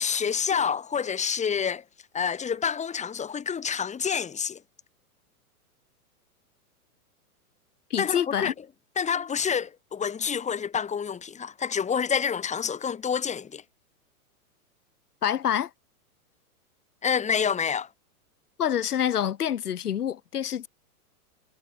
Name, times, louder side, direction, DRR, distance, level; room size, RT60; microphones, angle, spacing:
voice 1, 0.0-1.8 2.1-4.6 8.0-8.5 9.0-13.6 17.0-17.9, left 7 dB, 15° left, 5.8 m, -28 dB
voice 2, 7.9-8.5 15.2-15.7 18.6-20.7, left 9 dB, 85° left, 6.1 m, -26 dB
hypercardioid pair, 135°, 45 cm